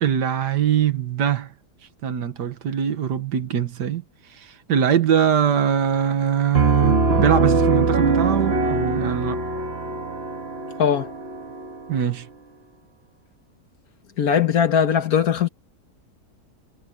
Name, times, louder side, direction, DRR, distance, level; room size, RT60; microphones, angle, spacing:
voice 1, 0.0-1.5 2.0-9.4 11.9-12.3, right 9 dB, 85° right, 1.9 m, -22 dB
Piano, 6.5-12.1, right 3 dB, 40° right, 1.7 m, -22 dB
voice 2, 10.8-11.1 14.2-15.5, left 8 dB, 65° left, 1.7 m, -19 dB
omnidirectional pair, 1.7 m